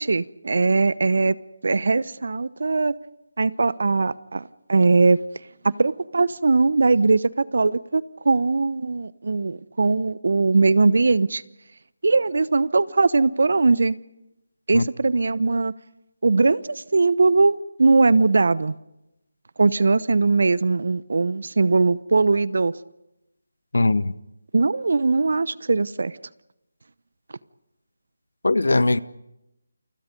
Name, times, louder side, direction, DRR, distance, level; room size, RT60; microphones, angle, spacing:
voice 1, 0.0-1.4 1.6-2.9 3.4-5.2 5.6-11.4 12.0-14.0 14.7-15.7 16.2-18.7 19.6-22.7 24.5-26.1, right 3 dB, 65° right, 0.9 m, -20 dB
voice 2, 23.7-24.1 28.4-29.0, left 2 dB, 75° left, 1.0 m, -19 dB
29.5 x 24.5 x 5.3 m
figure-of-eight pair, 160°, 0 cm